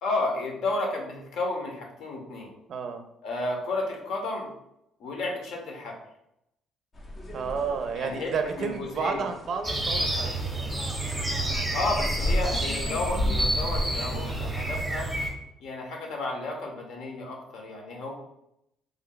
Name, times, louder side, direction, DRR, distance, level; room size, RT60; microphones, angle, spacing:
voice 1, 0.0-2.5 3.2-4.5 5.0-6.0 8.0-8.3 8.6-9.3 11.7-15.1 15.6-18.1, left 2 dB, 70° left, 1 dB, 0.9 m, -32 dB
voice 2, 2.7-3.0 7.3-10.3 11.0-11.2, right 5 dB, 50° right, 7 dB, 0.4 m, -31 dB
sound 1, 6.9-14.7, left 1 dB, 30° left, 0.5 m, -34 dB
sound 2, 9.6-15.3, right 1 dB, 5° right, 0.8 m, -29 dB
3.3 x 2.2 x 3.8 m, 0.81 s
cardioid pair, 130°, 0 cm